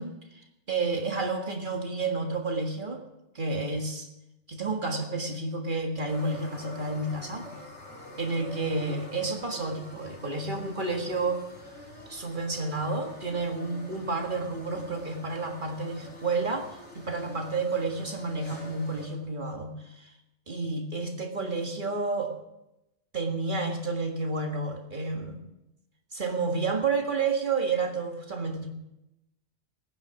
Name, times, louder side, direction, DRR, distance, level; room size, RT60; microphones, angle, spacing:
voice 1, 0.0-3.0 3.4-4.1 4.5-7.5 8.2-11.4 12.1-16.7 17.0-20.1 20.5-22.3 23.1-25.4 26.1-28.7, right 3 dB, 45° right, 3 dB, 1.9 m, -30 dB
sound 1, 6.0-19.1, left 1 dB, 65° left, 3.3 m, -46 dB
18.5 x 9.9 x 5.9 m, 0.91 s
omnidirectional pair, 1.2 m